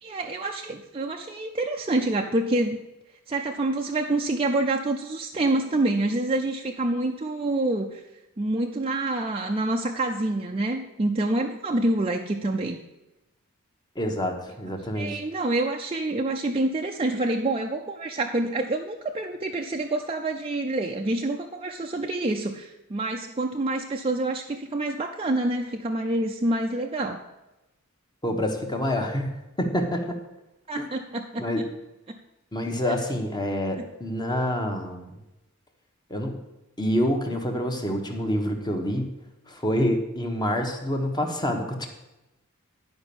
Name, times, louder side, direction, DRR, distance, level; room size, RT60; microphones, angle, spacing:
voice 1, 0.0-2.8 3.3-8.0 8.4-12.8 15.0-27.2 30.7-31.5 32.1-32.2 33.8-33.9, right 2 dB, 25° right, 1 dB, 0.5 m, -27 dB
voice 2, 13.9-15.2 28.2-30.2 30.8-30.9 31.4-31.7 32.5-35.1 36.1-36.4 36.8-39.1 39.5-41.9, equal, 20° left, 3 dB, 1.1 m, -27 dB
10.5 x 5.1 x 6.9 m, 0.97 s
head